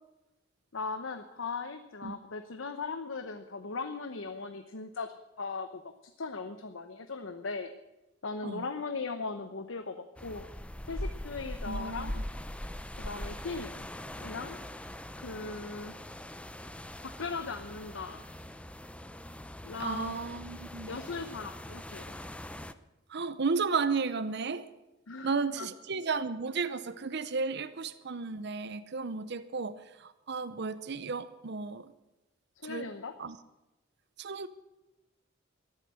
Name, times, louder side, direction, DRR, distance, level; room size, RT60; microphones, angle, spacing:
voice 1, 0.7-5.8 6.2-7.7 8.2-10.5 10.9-12.2 13.0-13.8 14.2-14.6 15.2-16.0 17.0-18.2 19.6-20.3 20.9-22.1 25.1-25.7 32.6-33.1, left 4 dB, 85° left, 8 dB, 0.9 m, -38 dB
sound 1, 10.2-22.7, left 1 dB, 5° left, 0.6 m, -42 dB
voice 2, 11.7-12.1 19.8-20.9 23.1-24.7 25.2-31.9 32.6-32.9 33.2-33.4 34.2-34.5, right 4 dB, 60° right, 13 dB, 0.7 m, -33 dB
13.5 x 11.5 x 7.7 m, 0.97 s
head